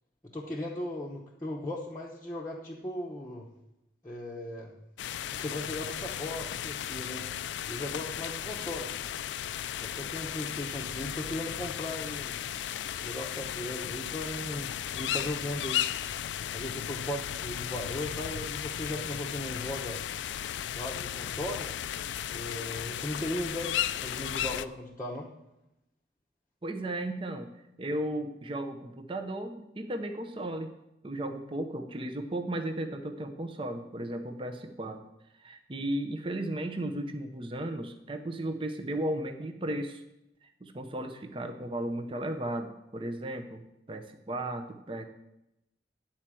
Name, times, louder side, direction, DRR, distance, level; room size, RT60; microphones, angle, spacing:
voice 1, 0.2-3.5 4.0-4.7 5.3-7.2 7.7-8.9 9.8-12.4 13.0-15.8 16.5-20.0 20.7-21.7 22.3-25.3, left 1 dB, 15° left, -4 dB, 0.8 m, -37 dB
sound 1, 5.0-24.6, left 10 dB, 75° left, 0.3 m, -35 dB
voice 2, 26.6-27.5 27.8-30.7 31.0-35.0 35.4-40.0 40.6-45.0, right 1 dB, 25° right, 6 dB, 0.6 m, -35 dB
9.8 x 4.4 x 7.5 m, 0.88 s
head